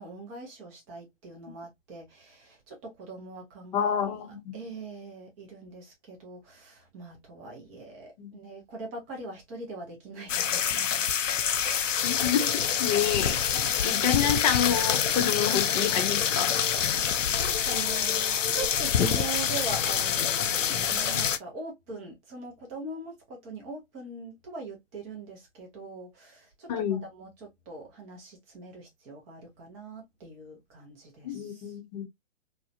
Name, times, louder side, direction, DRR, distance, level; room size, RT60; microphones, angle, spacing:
voice 1, 0.0-4.2 4.5-11.1 16.9-31.7, right 3 dB, 10° right, 0.4 m, -42 dB
voice 2, 3.7-4.5 8.2-8.4 12.0-13.4 13.8-16.6 26.7-27.0 31.2-32.1, left 8 dB, 35° left, 0.7 m, -28 dB
sound 1, 10.3-21.4, left 8 dB, 85° left, 0.5 m, -26 dB
3.0 x 2.0 x 2.4 m
hypercardioid pair, 130°, 37 cm